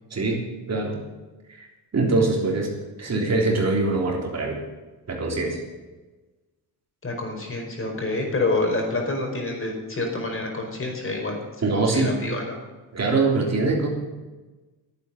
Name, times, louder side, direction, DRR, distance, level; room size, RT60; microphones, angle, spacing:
voice 1, 0.1-0.4 0.7-1.0 1.5-1.6 1.9-2.7 3.0-4.6 5.1-5.6 11.6-12.2 12.9-13.9, right 3 dB, 40° right, 0 dB, 3.6 m, -23 dB
voice 2, 7.0-11.4 11.7-12.6, left 2 dB, 35° left, 1 dB, 4.9 m, -27 dB
11.0 x 8.8 x 9.9 m, 1.2 s
cardioid pair, 85°, 39 cm